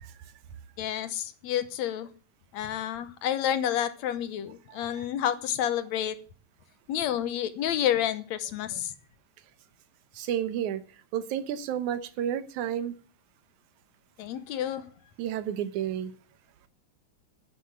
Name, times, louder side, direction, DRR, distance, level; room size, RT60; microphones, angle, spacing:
voice 1, 0.8-2.1 2.5-6.2 6.9-8.9 14.2-14.8, left 10 dB, 75° left, 12 dB, 2.2 m, -29 dB
voice 2, 10.1-10.8 11.1-12.9 15.2-16.1, right 10 dB, 85° right, 13 dB, 2.4 m, -31 dB
10.0 x 7.1 x 8.9 m, 0.40 s
omnidirectional pair, 3.3 m